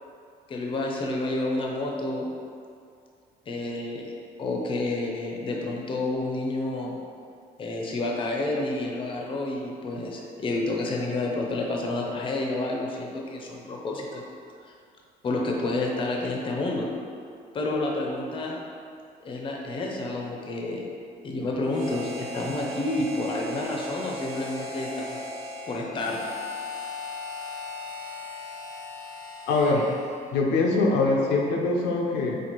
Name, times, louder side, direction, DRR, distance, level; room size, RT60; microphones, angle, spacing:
voice 1, 0.5-2.3 3.5-4.0 4.4-7.0 7.6-14.2 15.2-16.9 17.5-18.6 19.2-20.8 21.2-25.2 25.7-26.2, left 2 dB, 30° left, -1 dB, 0.5 m, -29 dB
Harmonica, 21.7-30.3, left 2 dB, 70° right, 0.8 m, -38 dB
voice 2, 29.5-30.0 30.3-32.4, left 3 dB, 85° left, -1 dB, 0.5 m, -23 dB
4.3 x 2.4 x 2.8 m, 2.3 s
cardioid pair, 110°, 17 cm